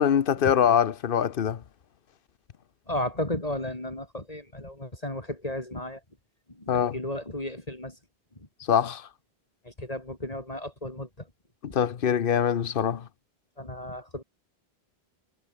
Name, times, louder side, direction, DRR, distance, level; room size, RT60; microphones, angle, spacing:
voice 1, 0.0-1.6 6.7-6.9 8.7-9.1 11.6-13.1, left 8 dB, 60° left, 1.0 m, -23 dB
voice 2, 2.9-6.0 6.5-8.0 8.4-8.8 9.6-11.3 11.7-11.8 13.6-14.2, left 1 dB, 35° left, 4.2 m, -34 dB
omnidirectional pair, 1.1 m